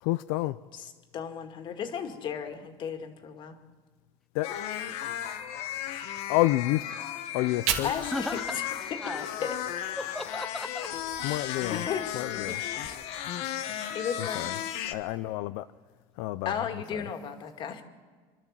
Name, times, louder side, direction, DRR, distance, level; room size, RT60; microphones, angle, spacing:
voice 1, 0.0-0.6 4.3-4.5 6.3-6.8 7.3-7.9 11.2-11.8 12.1-12.6 14.2-14.5 14.8-15.6 16.2-16.5 16.9-17.1, left 18 dB, 80° left, 0.5 m, -29 dB
voice 2, 0.7-3.6 7.8-8.7 8.9-9.6 11.4-13.0 13.5-14.7 16.4-17.8, left 7 dB, 45° left, 2.2 m, -36 dB
sound 1, 4.4-14.9, left 11 dB, 65° left, 1.4 m, -35 dB
Fire, 7.3-10.4 10.8-12.9, right 8 dB, 75° right, 2.5 m, -39 dB
voice 3, 8.1-8.6 9.0-9.2 10.0-10.9, left 1 dB, ahead, 0.6 m, -35 dB
28.5 x 12.5 x 7.5 m
cardioid pair, 130°, 12 cm